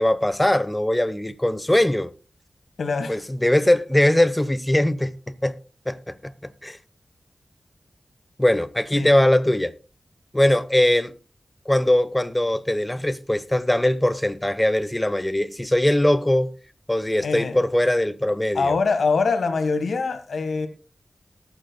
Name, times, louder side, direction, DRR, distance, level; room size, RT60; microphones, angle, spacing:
voice 1, 0.0-2.1 3.1-5.6 5.9-6.3 6.6-6.8 8.4-9.7 10.3-11.1 11.7-16.5 16.9-18.7, left 1 dB, 15° left, 1.0 m, -21 dB
voice 2, 2.8-3.2 8.9-9.1 17.2-17.6 18.5-20.7, left 4 dB, 90° left, 1.5 m, -24 dB
20.0 x 8.9 x 2.3 m
cardioid pair, 45°, 0 cm